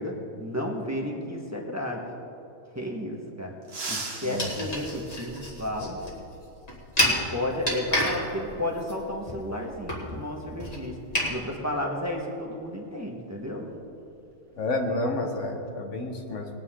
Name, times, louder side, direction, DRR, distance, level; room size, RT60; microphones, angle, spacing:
voice 1, 0.0-2.1 2.7-3.5 3.9-6.0 7.0-11.0 11.3-13.7, left 1 dB, 15° right, -1 dB, 1.4 m, -32 dB
sound 1, 3.6-6.0 7.7-7.8 9.0-9.1 10.7-10.9 11.3-11.5 12.0-14.1 14.4-14.7 15.1-15.5, right 3 dB, 55° right, 1.7 m, -40 dB
sound 2, 4.4-11.3, left 1 dB, 30° left, 2.3 m, -30 dB
voice 2, 14.6-16.5, left 2 dB, 80° left, 3 dB, 1.7 m, -30 dB
20.0 x 9.3 x 3.8 m, 2.7 s
omnidirectional pair, 1.2 m